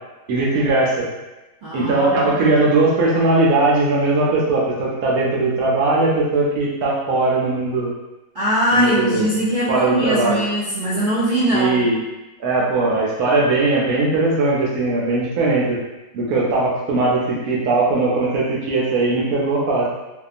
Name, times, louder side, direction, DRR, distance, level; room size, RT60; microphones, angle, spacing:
voice 1, 0.3-1.0 1.7-7.9 8.7-9.3 9.7-10.4 11.5-12.0 12.4-15.8 16.1-19.9, right 2 dB, 85° right, -4 dB, 1.1 m, -19 dB
voice 2, 1.6-2.6 8.3-11.8, right 1 dB, 60° right, -10 dB, 0.5 m, -21 dB
2.7 x 2.2 x 2.4 m, 1.1 s
omnidirectional pair, 1.5 m